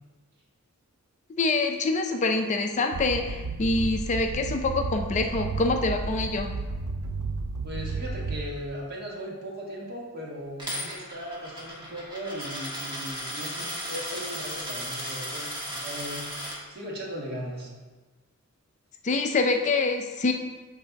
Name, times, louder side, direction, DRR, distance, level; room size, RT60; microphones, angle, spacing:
voice 1, 1.4-6.5 19.0-20.3, left 3 dB, 30° left, 4 dB, 0.4 m, -25 dB
sound 1, 2.9-8.7, right 3 dB, 75° right, 0.4 m, -32 dB
voice 2, 7.6-17.7, equal, 45° right, -2 dB, 1.4 m, -38 dB
Coin (dropping), 10.6-16.6, equal, 20° right, 1.4 m, -35 dB
7.9 x 3.4 x 4.0 m, 1.3 s
head